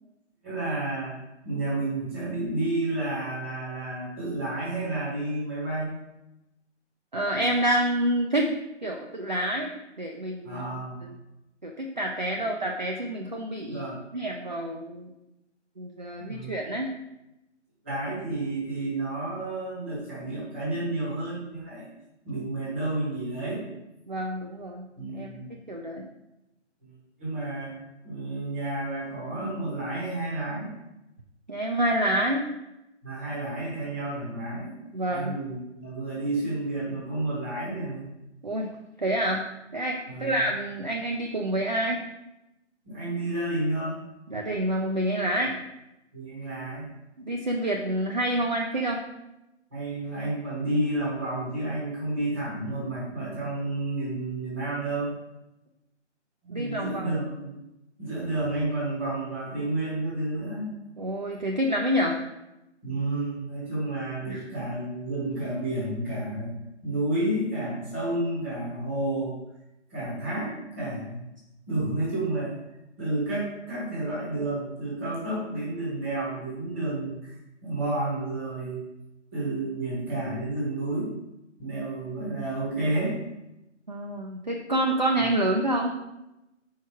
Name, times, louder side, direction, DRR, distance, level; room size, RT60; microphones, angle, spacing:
voice 1, 0.4-1.2 1.4-5.9 10.4-11.1 12.4-12.5 13.7-14.0 16.2-16.6 17.8-21.9 22.2-23.7 25.0-25.5 26.8-27.8 28.0-30.7 33.0-34.7 35.1-38.1 40.1-40.4 42.8-44.0 46.1-46.9 49.7-55.2 56.4-57.5 58.0-60.8 62.8-66.6 66.8-69.4 69.9-71.3 71.7-72.6 73.0-77.4 77.6-78.9 79.3-81.1 81.6-83.2 85.2-85.3, right 2 dB, 10° right, -6 dB, 0.9 m, -31 dB
voice 2, 7.1-8.5 8.8-9.7 10.0-10.6 11.6-13.8 14.1-15.1 15.8-16.9 24.1-24.9 25.1-26.1 31.5-32.5 34.9-35.4 38.4-38.7 39.0-39.4 39.7-42.0 44.3-45.6 47.2-49.0 56.5-57.3 61.0-62.2 64.3-64.5 83.9-85.9, right 1 dB, 40° right, 0 dB, 0.4 m, -27 dB
4.7 x 4.6 x 4.6 m, 0.93 s
figure-of-eight pair, 155°, 36 cm